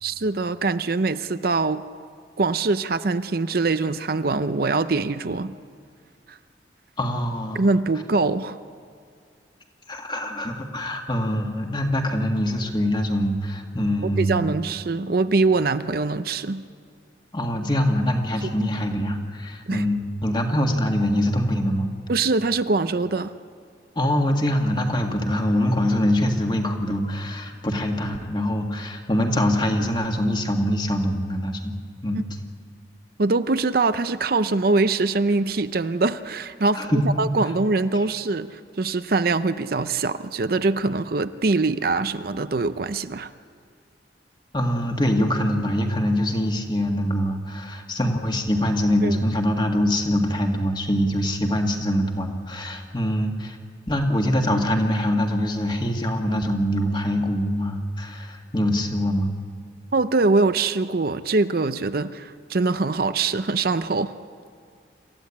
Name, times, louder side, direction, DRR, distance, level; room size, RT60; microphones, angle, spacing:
voice 1, 0.0-1.8 2.4-5.6 6.3-6.4 7.5-8.6 14.2-16.6 18.4-18.7 19.7-19.9 22.1-23.3 32.1-32.2 33.2-43.3 49.0-49.1 59.9-64.1, right 3 dB, 55° right, 11 dB, 0.6 m, -23 dB
voice 2, 7.0-7.7 9.9-14.6 17.3-21.9 24.0-31.7 32.0-32.2 36.7-37.3 44.5-53.6 53.9-59.3, equal, 25° left, 3 dB, 2.0 m, -24 dB
27.5 x 15.0 x 8.6 m, 2.3 s
head